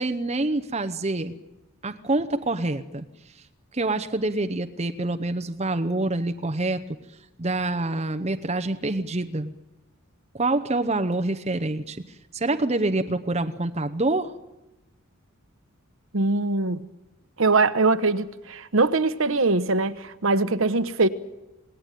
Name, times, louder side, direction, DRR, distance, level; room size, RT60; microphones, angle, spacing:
voice 1, 0.0-1.4 1.8-3.0 3.7-6.8 7.4-9.5 10.3-14.3, right 2 dB, 30° right, 0.8 m, -26 dB
voice 2, 16.1-16.8 17.4-21.1, right 3 dB, 60° right, 1.1 m, -22 dB
27.0 x 19.0 x 9.2 m
head